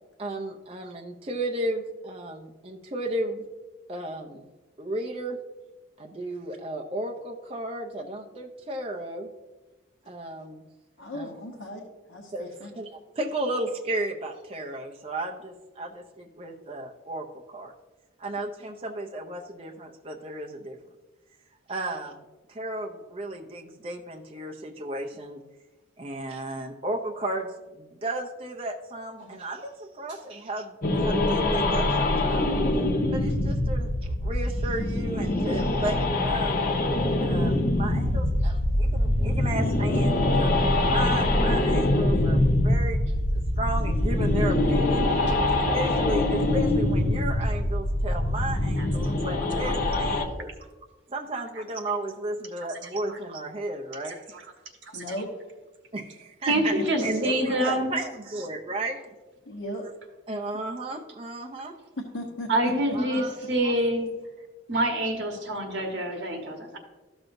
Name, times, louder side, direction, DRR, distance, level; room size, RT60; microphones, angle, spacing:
voice 1, 0.2-3.5 3.9-4.5 4.8-5.4 6.0-9.3 10.1-10.6 11.1-11.3 12.3-12.5 12.8-12.9 13.2-17.7 18.2-20.8 21.7-22.2 22.5-25.4 26.0-32.5 33.1-36.6 37.2-43.0 43.6-45.1 45.5-50.5 51.1-54.4 55.9-56.7 57.0-59.0 60.3-61.8 62.9-63.3 63.6-63.7, right 1 dB, 30° right, 1 dB, 0.5 m, -34 dB
voice 2, 11.0-11.8 12.1-12.7 54.9-55.3 56.5-57.3 57.7-57.8 59.5-59.9 62.0-63.0, equal, 80° left, -1 dB, 1.0 m, -36 dB
sound 1, 30.8-50.2, left 1 dB, 45° left, 0.7 m, -24 dB
voice 3, 56.5-57.9 62.5-64.1 64.7-66.8, right 1 dB, 65° right, 2 dB, 1.3 m, -26 dB
13.0 x 6.1 x 2.6 m, 1.2 s
head